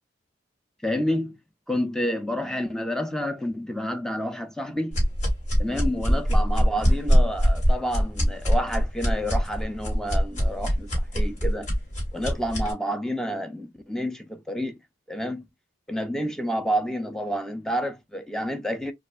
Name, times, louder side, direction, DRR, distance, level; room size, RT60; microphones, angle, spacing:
voice 1, 0.8-1.4 1.7-5.0 5.6-11.7 12.1-14.8 15.1-15.4 15.9-18.9, equal, 5° left, 0.4 m, -29 dB
sound 1, 4.9-12.7, equal, 40° left, 2.3 m, -22 dB
4.7 x 2.3 x 2.4 m
head